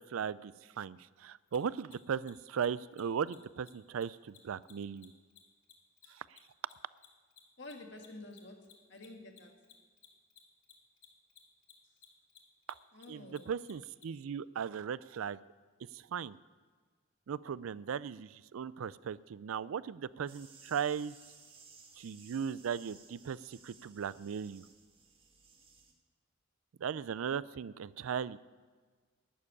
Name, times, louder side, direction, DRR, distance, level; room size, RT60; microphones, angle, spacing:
voice 1, 0.0-5.1 6.1-6.2 13.1-15.4 15.9-16.4 17.3-21.1 22.0-24.6 26.8-28.4, right 7 dB, 85° right, 19 dB, 0.4 m, -37 dB
Mechanisms, 1.5-1.6 1.8-2.0 2.2-2.3 2.6-2.7 2.9-3.0 3.3-3.4 3.6-3.7 4.0-6.7 7.0-14.1, left 11 dB, 90° left, 2.1 m, -58 dB
voice 2, 7.6-9.6 12.9-13.5, left 2 dB, 55° left, 3 dB, 1.8 m, -50 dB
sound 1, 20.3-25.9, right 5 dB, 25° right, 1.5 m, -59 dB
11.0 x 7.6 x 9.7 m, 1.5 s
head